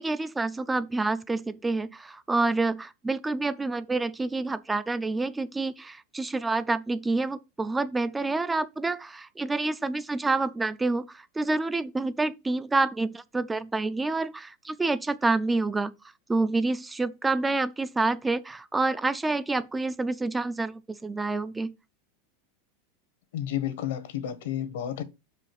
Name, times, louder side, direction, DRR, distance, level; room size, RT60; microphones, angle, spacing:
voice 1, 0.0-15.9 16.3-21.7, right 3 dB, 10° right, 0.4 m, -28 dB
voice 2, 23.3-25.0, left 11 dB, 75° left, 1.4 m, -31 dB
6.1 x 4.9 x 6.6 m
supercardioid pair, 150°, 0 cm